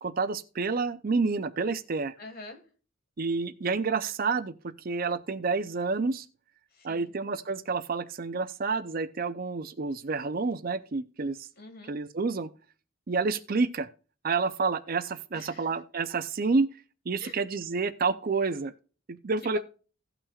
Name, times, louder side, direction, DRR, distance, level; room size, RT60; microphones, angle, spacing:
voice 1, 0.0-2.1 3.2-6.3 6.8-11.5 11.9-12.5 13.1-13.9 14.2-16.7 17.1-18.7 19.1-19.6, right 4 dB, 45° right, 0.5 m, -29 dB
voice 2, 2.2-2.6 6.7-7.1 11.6-11.9 15.3-15.7 17.2-17.4 19.4-19.6, left 3 dB, 50° left, 1.7 m, -45 dB
17.0 x 5.9 x 2.4 m
head